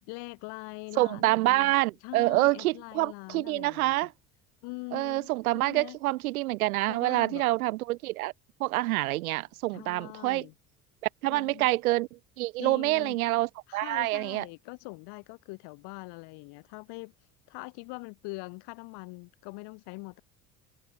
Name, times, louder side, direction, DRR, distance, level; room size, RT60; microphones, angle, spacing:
voice 1, 0.0-1.7 2.0-4.1 4.6-6.0 6.9-7.4 9.7-10.5 11.3-11.7 12.6-13.2 13.7-17.1 17.5-20.2, left 28 dB, 65° left, 5.7 m, -42 dB
voice 2, 1.0-4.1 4.9-8.3 8.6-10.5 11.2-14.4, right 18 dB, 80° right, 0.7 m, -27 dB
hypercardioid pair, 65°, 42 cm